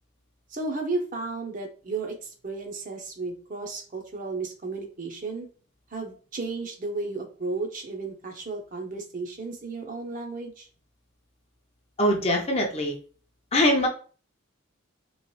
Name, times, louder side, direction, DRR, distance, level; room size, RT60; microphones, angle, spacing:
voice 1, 0.5-5.5 5.9-10.7, right 3 dB, 40° right, 3 dB, 0.6 m, -33 dB
voice 2, 12.0-13.0 13.5-13.9, left 1 dB, 30° left, 2 dB, 0.5 m, -22 dB
3.0 x 3.0 x 3.0 m, 0.40 s
head